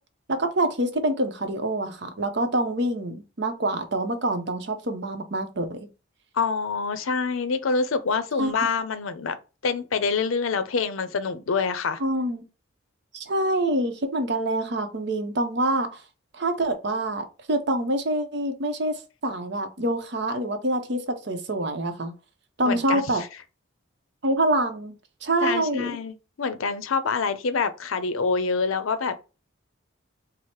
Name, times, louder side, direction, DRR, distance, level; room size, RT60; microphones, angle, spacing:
voice 1, 0.3-5.8 8.4-8.5 12.0-12.4 13.1-16.0 16.3-18.9 19.2-22.1 22.6-23.2 24.2-25.0 25.2-25.9, right 1 dB, 55° right, 0.7 m, -26 dB
voice 2, 6.3-9.4 9.6-12.0 22.6-23.3 25.4-29.2, left 5 dB, 85° left, 0.5 m, -26 dB
4.7 x 2.0 x 4.3 m
head